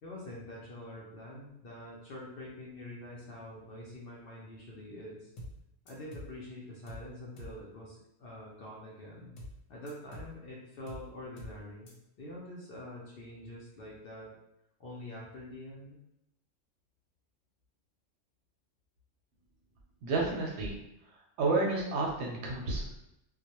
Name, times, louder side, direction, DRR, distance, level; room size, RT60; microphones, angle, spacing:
voice 1, 0.0-5.3 5.8-9.3 9.7-11.9 12.2-14.3 14.8-16.0, left 1 dB, 60° left, -4 dB, 0.6 m, -45 dB
sound 1, 5.4-5.6 5.9-6.4 6.9-7.1 7.4-7.6 9.4-9.6 9.9-10.4 10.9-11.1 11.4-11.6 11.9-12.0, equal, 85° left, 1.0 m, -45 dB
voice 2, 20.0-20.7 21.4-23.0, right 3 dB, 70° right, -1 dB, 0.8 m, -30 dB
2.3 x 2.0 x 2.8 m, 0.83 s
omnidirectional pair, 1.3 m